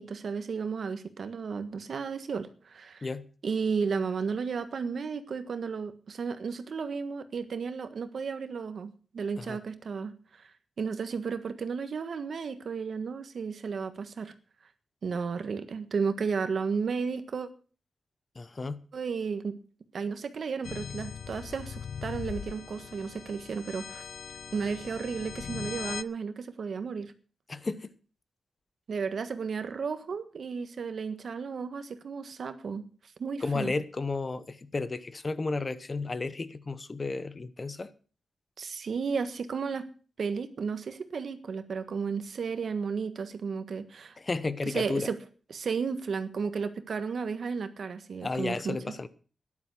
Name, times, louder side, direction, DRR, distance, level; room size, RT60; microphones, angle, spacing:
voice 1, 0.0-3.1 3.4-10.4 10.8-14.3 15.0-17.5 18.9-19.5 19.9-24.0 24.5-27.1 28.9-32.8 33.2-33.7 38.6-39.9 40.2-44.2 44.7-45.2 45.5-48.9, right 5 dB, 65° right, 1.5 m, -33 dB
voice 2, 18.3-18.8 27.5-27.9 33.4-37.9 44.2-45.1 48.2-49.1, left 3 dB, 35° left, 0.9 m, -33 dB
sound 1, 20.6-26.0, left 7 dB, 90° left, 0.6 m, -40 dB
13.0 x 11.0 x 6.2 m
wide cardioid pair, 125°, 0 cm